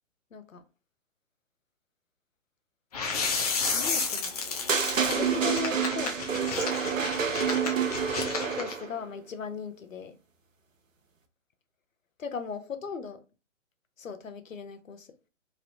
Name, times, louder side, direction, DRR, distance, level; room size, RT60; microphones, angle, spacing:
voice 1, 0.3-0.6 3.7-4.4 5.0-6.5 8.5-10.2 12.2-13.2 14.0-15.1, left 5 dB, 85° left, 0.6 m, -38 dB
sound 1, 2.9-8.7, left 4 dB, 30° left, 0.5 m, -32 dB
sound 2, 4.7-8.9, right 7 dB, 80° right, 0.7 m, -28 dB
3.1 x 2.6 x 2.6 m
figure-of-eight pair, 130°, 38 cm